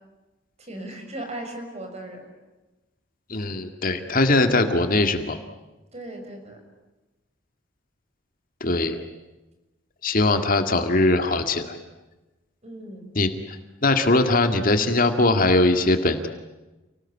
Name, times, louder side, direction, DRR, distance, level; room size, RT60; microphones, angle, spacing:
voice 1, 0.6-2.3 5.9-6.6 12.6-13.1, right 1 dB, 35° right, 4 dB, 6.3 m, -37 dB
voice 2, 3.3-5.4 8.6-9.1 10.0-11.8 13.2-13.6 13.8-16.3, left 2 dB, 45° left, 7 dB, 2.0 m, -21 dB
29.5 x 19.5 x 9.9 m, 1.1 s
head